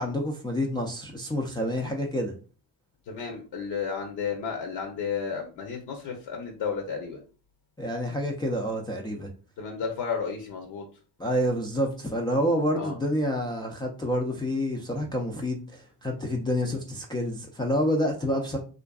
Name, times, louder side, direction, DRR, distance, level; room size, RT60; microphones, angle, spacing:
voice 1, 0.0-2.3 7.8-9.3 11.2-18.6, equal, 10° left, -1 dB, 0.3 m, -28 dB
voice 2, 3.1-7.2 9.6-10.8 12.7-13.0, left 6 dB, 55° left, 2 dB, 0.7 m, -32 dB
2.5 x 2.4 x 2.3 m, 0.37 s
hypercardioid pair, 60°, 48 cm